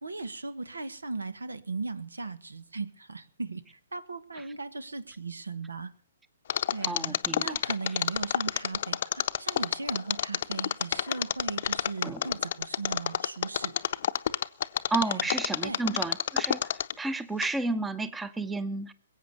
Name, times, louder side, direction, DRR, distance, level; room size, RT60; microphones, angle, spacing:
voice 1, 0.0-5.9 6.7-13.7 15.1-15.3 15.6-15.8, right 3 dB, 85° right, 16 dB, 1.2 m, -37 dB
Mechanisms, 6.5-17.1 17.4-17.5, left 10 dB, 55° left, 0.7 m, -28 dB
voice 2, 6.8-7.6 12.0-12.2 14.9-18.9, right 3 dB, 10° right, 15 dB, 0.8 m, -32 dB
21.5 x 8.7 x 6.7 m, 0.42 s
figure-of-eight pair, 125°, 0 cm